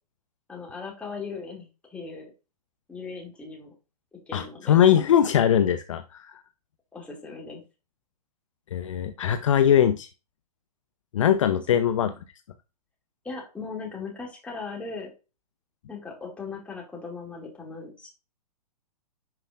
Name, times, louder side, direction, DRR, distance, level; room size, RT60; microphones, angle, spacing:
voice 1, 0.5-2.3 2.9-3.7 4.1-4.7 6.9-7.6 12.0-12.2 13.2-15.1 15.9-18.1, left 4 dB, 5° left, -1 dB, 2.1 m, -38 dB
voice 2, 4.3-6.4 8.7-10.1 11.1-12.1, left 9 dB, 50° left, 9 dB, 0.6 m, -21 dB
10.5 x 4.9 x 2.4 m, 0.31 s
figure-of-eight pair, 115°, 21 cm